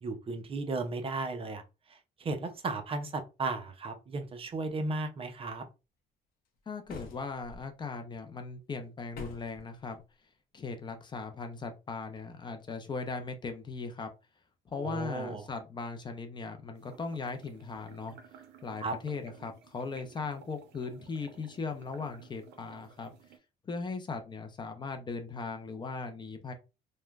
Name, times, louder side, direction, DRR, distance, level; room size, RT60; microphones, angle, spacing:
voice 1, 0.0-1.6 1.9-5.6 14.8-15.4 18.8-19.0, right 3 dB, 35° right, 6 dB, 0.5 m, -35 dB
voice 2, 6.7-10.0 10.5-14.1 14.7-18.2 18.6-23.1 23.6-26.5, left 4 dB, 25° left, 6 dB, 0.4 m, -38 dB
sound 1, 6.9-7.6 9.1-9.6, left 3 dB, 60° left, 0.7 m, -45 dB
sound 2, 16.7-23.4, right 7 dB, 80° right, 0.5 m, -55 dB
3.1 x 2.1 x 2.3 m, 0.29 s
cardioid pair, 110°, 17 cm